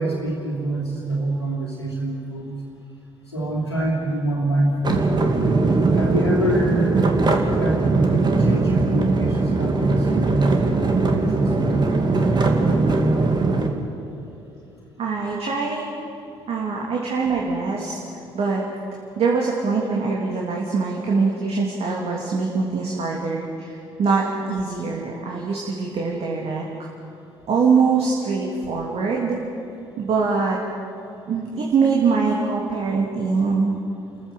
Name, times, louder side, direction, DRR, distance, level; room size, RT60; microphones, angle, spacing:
voice 1, 0.0-2.6 3.3-5.1 5.9-7.0 7.6-12.1, right 1 dB, 90° left, -2 dB, 2.9 m, -25 dB
sound 1, 4.8-13.7, right 3 dB, 35° right, 2.5 m, -20 dB
voice 2, 15.0-15.9 16.5-18.6 19.1-26.9 27.5-29.4 30.0-30.6 31.3-33.7, right 4 dB, 50° right, -2 dB, 2.9 m, -23 dB
30.0 x 14.5 x 7.8 m, 2.8 s
figure-of-eight pair, 45°, 13 cm